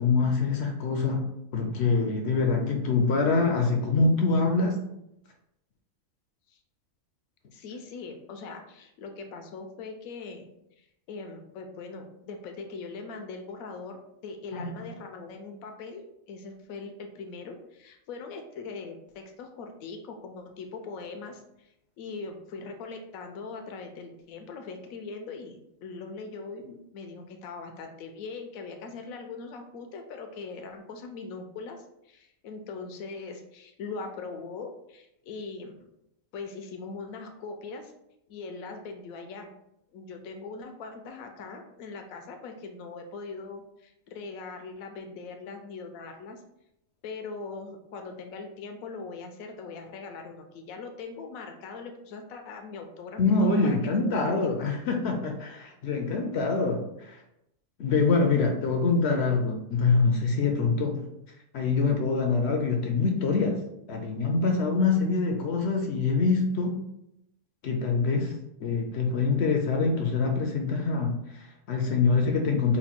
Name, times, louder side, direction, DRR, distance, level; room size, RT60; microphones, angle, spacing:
voice 1, 0.0-4.8 14.5-14.9 53.2-57.2 57.8-61.1 61.5-63.6 63.9-66.8 67.6-72.8, left 4 dB, 65° left, 3 dB, 0.7 m, -25 dB
voice 2, 7.5-10.5 10.8-21.7 22.0-35.9 36.3-37.9 38.3-39.5 39.9-46.4 47.0-53.8 54.0-54.7, left 4 dB, 85° left, 4 dB, 1.0 m, -41 dB
4.3 x 2.2 x 4.2 m, 0.82 s
omnidirectional pair, 1.4 m